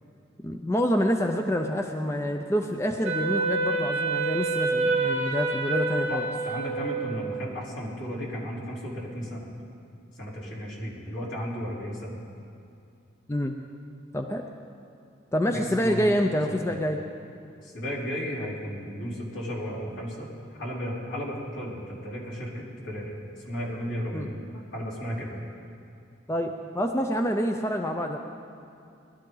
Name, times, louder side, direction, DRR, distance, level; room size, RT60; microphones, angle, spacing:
voice 1, 0.4-6.2 13.3-13.5 14.1-14.4 15.3-17.0 24.1-24.3 26.3-28.2, equal, 15° left, 4 dB, 0.5 m, -27 dB
Wind instrument woodwind instrument, 3.0-7.4, right 3 dB, 35° right, 1.7 m, -27 dB
voice 2, 6.1-9.5 10.1-12.2 15.5-16.2 16.6-16.8 17.6-20.3 20.6-23.2 23.4-25.3, equal, 75° left, -6 dB, 3.7 m, -34 dB
20.5 x 12.5 x 3.9 m, 2.6 s
head